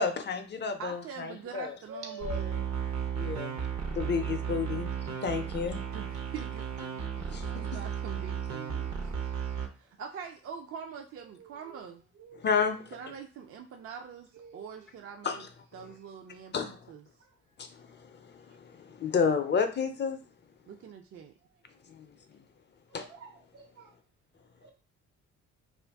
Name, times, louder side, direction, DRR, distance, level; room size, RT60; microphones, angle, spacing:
voice 1, 0.0-1.7 3.2-3.6 3.9-4.9 5.2-5.8 7.3-7.4 12.4-12.8 15.2-15.4 16.5-16.8 17.6-17.9 18.2-20.2 21.9-22.1 22.9-23.0, left 5 dB, 35° left, 8 dB, 0.5 m, -30 dB
voice 2, 0.8-2.7 5.7-9.1 9.7-12.0 12.9-17.1 20.7-21.3, right 6 dB, 50° right, 3 dB, 0.4 m, -44 dB
voice 3, 1.9-2.6 12.3-12.4 14.5-14.7 22.9-23.9 24.6-24.7, left 1 dB, 80° right, 1 dB, 1.2 m, -44 dB
sound 1, 2.2-9.7, right 7 dB, 65° right, 0.8 m, -34 dB
2.5 x 2.4 x 3.4 m, 0.37 s
cardioid pair, 90°, 30 cm